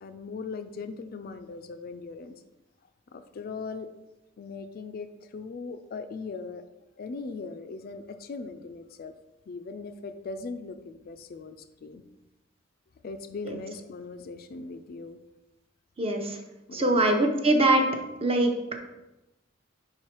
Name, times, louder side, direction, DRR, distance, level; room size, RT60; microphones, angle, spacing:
voice 1, 0.0-2.4 3.1-3.9 4.4-6.6 7.0-9.1 9.5-12.0 13.0-15.2 16.7-17.0, left 4 dB, 50° left, 9 dB, 0.4 m, -39 dB
voice 2, 16.0-16.4 16.7-17.8 18.2-18.8, right 1 dB, 30° right, 4 dB, 0.7 m, -23 dB
4.8 x 4.7 x 4.4 m, 0.99 s
head